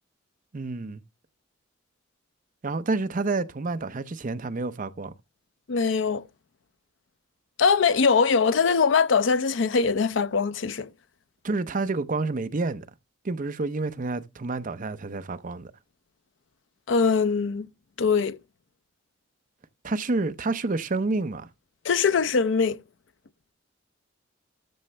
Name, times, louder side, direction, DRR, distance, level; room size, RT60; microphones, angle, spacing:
voice 1, 0.5-1.0 2.6-5.1 11.4-12.9 13.2-15.7 19.8-21.5, right 3 dB, 40° right, 0.6 m, -29 dB
voice 2, 5.7-6.2 7.6-10.9 16.9-17.7 18.0-18.4 21.8-22.8, left 5 dB, 65° left, 0.5 m, -22 dB
13.5 x 6.2 x 3.3 m
head